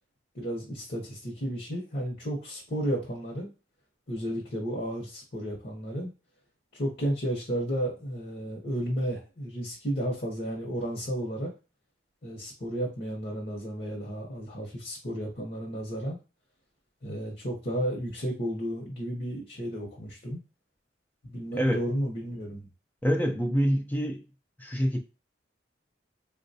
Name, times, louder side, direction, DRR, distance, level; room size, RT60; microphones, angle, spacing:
voice 1, 0.3-3.5 4.1-6.1 6.7-11.5 12.2-16.2 17.0-20.4 21.2-22.7, equal, 50° left, 0.9 m, -33 dB
voice 2, 21.5-21.9 23.0-24.3 24.6-25.0, equal, 10° left, 0.4 m, -26 dB
3.9 x 2.2 x 2.6 m
head